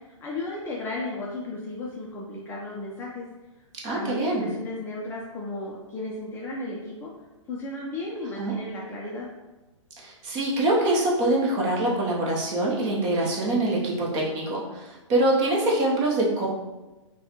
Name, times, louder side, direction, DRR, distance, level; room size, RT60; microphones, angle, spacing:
voice 1, 0.2-3.2 3.9-7.1 7.5-9.3, left 2 dB, 15° left, -4 dB, 0.5 m, -34 dB
voice 2, 3.8-4.5 8.4-8.5 10.0-16.5, right 1 dB, 25° right, -3 dB, 0.9 m, -24 dB
5.2 x 2.3 x 3.0 m, 1.1 s
figure-of-eight pair, 115°, 17 cm